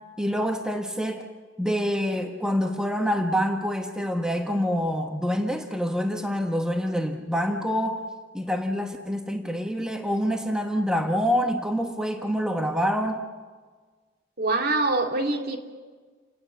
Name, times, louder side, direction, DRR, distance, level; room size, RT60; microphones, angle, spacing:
voice 1, 0.2-1.3 1.6-8.0 8.3-13.2, equal, 5° right, 4 dB, 1.3 m, -26 dB
voice 2, 14.4-15.6, right 2 dB, 55° right, 3 dB, 2.4 m, -24 dB
29.0 x 18.5 x 7.4 m, 1.5 s
head